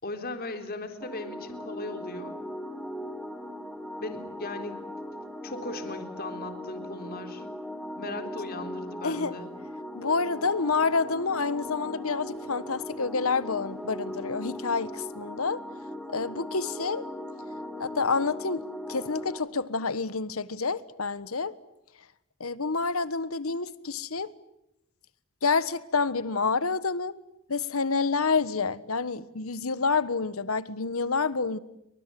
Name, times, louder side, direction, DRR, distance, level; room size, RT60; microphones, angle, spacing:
voice 1, 0.0-2.4 4.0-4.9 5.4-7.5 8.0-9.5, left 2 dB, 45° left, 3.6 m, -37 dB
sound 1, 1.0-19.4, left 1 dB, ahead, 3.1 m, -39 dB
voice 2, 9.0-9.3 10.0-15.6 16.1-17.0 17.8-21.5 22.4-24.3 25.4-27.1 27.5-31.6, left 4 dB, 85° left, 1.4 m, -28 dB
30.0 x 25.0 x 7.8 m
head